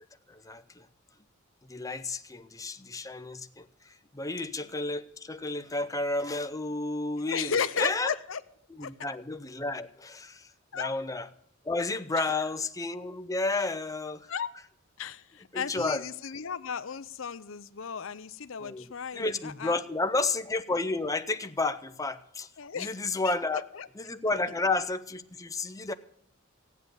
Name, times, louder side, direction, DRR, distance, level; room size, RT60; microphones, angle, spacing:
voice 1, 0.3-0.9 1.7-8.2 8.8-10.5 10.7-11.3 11.6-14.3 15.5-16.0 18.6-18.9 19.1-22.5 22.7-23.6 24.0-25.9, left 3 dB, 15° left, 9 dB, 0.6 m, -31 dB
voice 2, 7.1-8.4 8.8-8.9 10.7-10.9 12.2-12.3 13.6-13.7 14.3-14.5 15.0-19.7 22.6-22.9 23.2-23.3 23.7-23.9, left 7 dB, 70° left, 13 dB, 0.6 m, -34 dB
15.0 x 9.4 x 6.9 m, 0.68 s
head